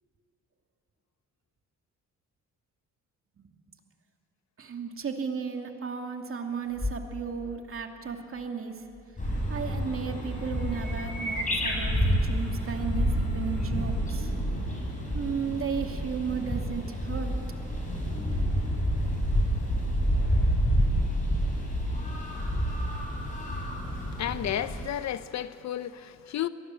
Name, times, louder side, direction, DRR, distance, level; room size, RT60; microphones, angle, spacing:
voice 1, 4.6-8.8 9.3-14.3 15.1-17.4, right 6 dB, 45° right, 2.5 m, -35 dB
sound 1, 6.6-10.2 14.7-14.8 15.6-15.8 17.0-18.3 23.9-24.1, left 2 dB, 10° left, 1.7 m, -40 dB
sound 2, 9.2-24.8, equal, 25° left, 7.2 m, -29 dB
voice 2, 23.9-26.5, left 11 dB, 65° left, 0.9 m, -32 dB
23.5 x 19.5 x 7.8 m
cardioid pair, 90°, 30 cm